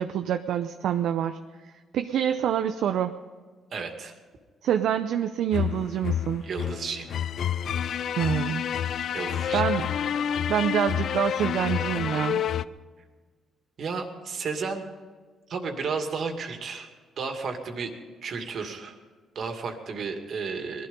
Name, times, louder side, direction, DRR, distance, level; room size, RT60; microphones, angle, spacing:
voice 1, 0.0-1.4 1.9-3.1 4.6-6.4 8.2-8.6 9.5-9.9 10.5-12.4, right 9 dB, 75° right, 7 dB, 0.6 m, -26 dB
voice 2, 3.7-4.1 6.4-7.1 9.1-9.7 13.8-14.8 15.5-16.9 17.2-17.9 18.2-19.0 19.3-20.9, right 5 dB, 60° right, 5 dB, 2.2 m, -32 dB
sound 1, 5.5-12.6, left 9 dB, 65° left, 0.4 m, -28 dB
20.0 x 12.5 x 5.5 m, 1.5 s
cardioid pair, 90°, 0 cm